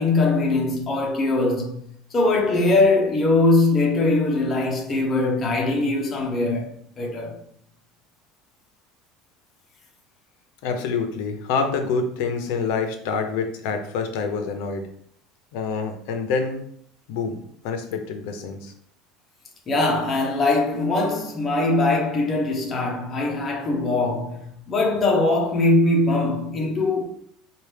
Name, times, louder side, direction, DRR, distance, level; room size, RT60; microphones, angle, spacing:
voice 1, 0.0-1.9 2.1-6.7 7.0-7.4 19.7-27.0, left 2 dB, 20° left, 0.8 m, -21 dB
voice 2, 10.6-14.8 15.5-16.6 17.1-18.7, left 5 dB, 65° left, 0.7 m, -27 dB
4.7 x 2.4 x 3.4 m
cardioid pair, 170°, 0 cm